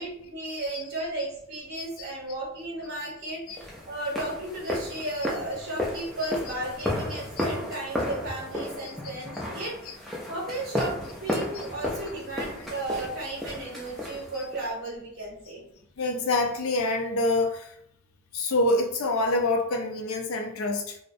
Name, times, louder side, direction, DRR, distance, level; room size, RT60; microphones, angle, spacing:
voice 1, 0.0-15.6, right 1 dB, 70° right, 0.8 m, -34 dB
voice 2, 1.8-2.1 3.5-3.6 7.4-7.5 9.8-9.9 14.3-14.4 16.0-17.8 18.3-21.0, left 2 dB, 75° left, 0.4 m, -26 dB
sound 1, 3.6-14.7, left 1 dB, ahead, 0.3 m, -33 dB
2.5 x 2.0 x 2.5 m
head